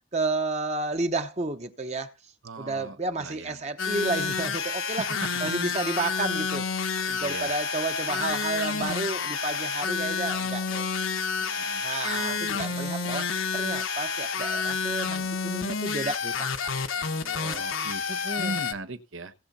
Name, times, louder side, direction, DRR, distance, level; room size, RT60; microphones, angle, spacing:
voice 1, 0.1-2.1 2.6-5.1 5.4-6.7 7.1-10.9 11.4-13.3 13.5-16.8 17.2-17.7 18.1-18.6, right 3 dB, 35° right, 0.9 m, -31 dB
voice 2, 2.4-3.6 4.9-5.3 7.2-7.5 11.6-11.8 12.2-12.8 15.0-15.3 17.4-18.0 18.4-19.3, right 3 dB, 80° right, 1.1 m, -38 dB
sound 1, 3.8-18.7, left 5 dB, 80° left, 1.3 m, -29 dB
18.0 x 6.9 x 4.3 m
head